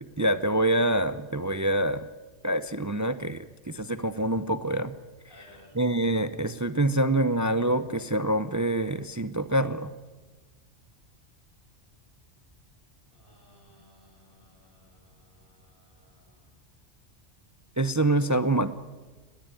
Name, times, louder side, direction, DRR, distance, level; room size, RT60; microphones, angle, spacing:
voice 1, 0.0-2.0 2.4-4.9 5.7-9.9 17.8-18.7, right 1 dB, 20° right, 13 dB, 0.6 m, -26 dB
voice 2, 5.3-5.7 13.1-16.5, left 1 dB, 50° left, 1 dB, 7.1 m, -59 dB
19.5 x 19.5 x 9.1 m, 1.3 s
omnidirectional pair, 1.2 m